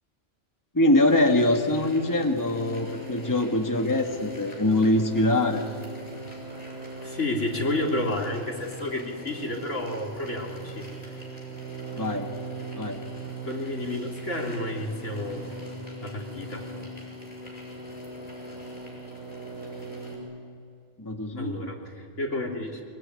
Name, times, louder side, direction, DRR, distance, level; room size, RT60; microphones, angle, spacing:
voice 1, 0.7-5.6 12.0-12.3 12.7-13.0 21.0-21.6, left 1 dB, 15° left, 4 dB, 1.6 m, -23 dB
sound 1, 1.0-20.2, right 1 dB, 30° left, 6.3 m, -39 dB
voice 2, 7.0-10.9 13.4-15.5 16.0-16.7 21.4-22.8, left 1 dB, 80° left, 0 dB, 3.7 m, -31 dB
24.5 x 24.0 x 9.8 m, 2.3 s
omnidirectional pair, 1.3 m